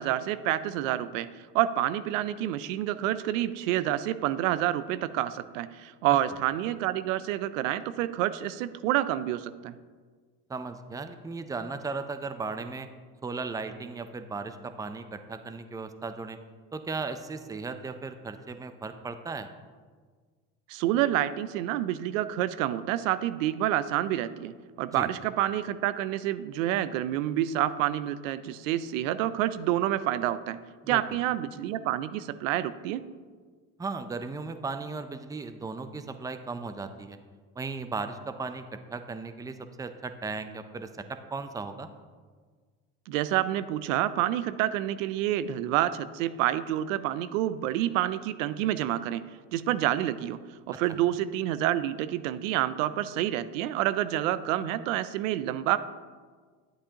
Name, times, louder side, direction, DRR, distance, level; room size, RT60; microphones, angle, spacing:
voice 1, 0.0-9.7 20.7-30.6 30.9-33.1 43.1-49.2 49.5-50.4 50.7-55.8, right 13 dB, 85° right, 14 dB, 0.5 m, -28 dB
voice 2, 10.5-12.9 13.2-16.4 16.7-19.5 24.9-25.1 30.8-31.0 33.8-37.2 37.5-41.9, right 4 dB, 10° right, 9 dB, 0.5 m, -36 dB
10.0 x 8.5 x 2.9 m, 1.5 s
supercardioid pair, 90°, 38 cm